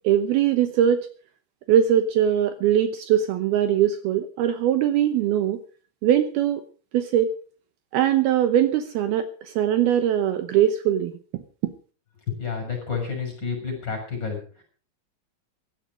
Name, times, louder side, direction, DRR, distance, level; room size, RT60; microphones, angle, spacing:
voice 1, 0.0-1.1 1.7-5.6 6.0-6.6 6.9-7.3 7.9-11.1, right 10 dB, 90° right, 9 dB, 2.1 m, -21 dB
voice 2, 12.3-14.6, left 6 dB, 20° left, 4 dB, 6.7 m, -30 dB
16.0 x 12.5 x 5.2 m, 0.40 s
omnidirectional pair, 5.9 m